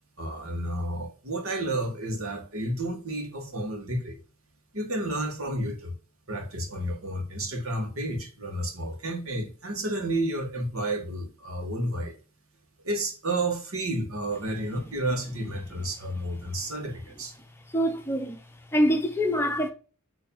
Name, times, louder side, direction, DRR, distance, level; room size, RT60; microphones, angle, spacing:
voice 1, 0.2-4.2 4.7-5.9 6.3-12.2 12.8-17.3, right 1 dB, 85° right, 2.2 m, -31 dB
voice 2, 17.7-18.4 18.7-19.7, equal, 10° left, 1.0 m, -24 dB
7.5 x 3.7 x 5.5 m
head